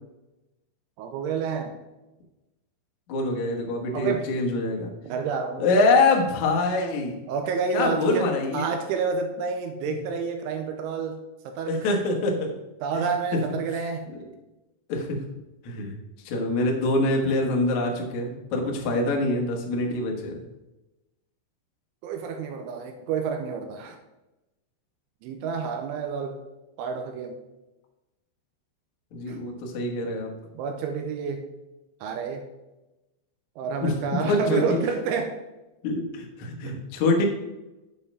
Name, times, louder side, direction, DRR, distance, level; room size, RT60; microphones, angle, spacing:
voice 1, 1.0-1.8 3.9-4.3 5.0-5.7 7.3-8.3 8.5-12.0 12.8-14.1 22.0-24.0 25.2-26.4 26.8-27.4 29.3-29.4 30.5-31.5 32.0-32.5 33.6-35.4 36.6-36.8, right 5 dB, 80° right, 6 dB, 2.9 m, -29 dB
voice 2, 3.1-4.9 5.6-7.2 7.7-8.7 11.7-12.5 14.1-14.2 14.9-15.2 15.6-15.9 16.2-20.4 29.1-30.3 33.8-34.6 35.8-37.2, left 2 dB, 80° left, 0 dB, 1.6 m, -25 dB
8.4 x 5.4 x 5.3 m, 1.0 s
omnidirectional pair, 5.8 m